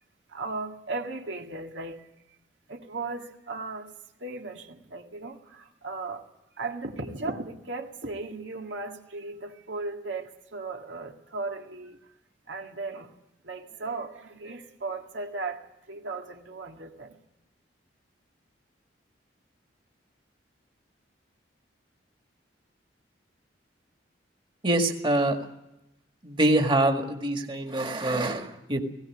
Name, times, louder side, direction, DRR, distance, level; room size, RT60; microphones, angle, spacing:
voice 1, 0.3-2.0 2.7-3.9 4.2-6.2 6.6-12.0 12.5-13.1 13.4-15.6 15.9-17.2, right 3 dB, 90° right, 1.9 m, -36 dB
voice 2, 24.6-25.4 26.2-28.8, right 1 dB, 25° right, 1.8 m, -25 dB
18.5 x 16.5 x 9.7 m
head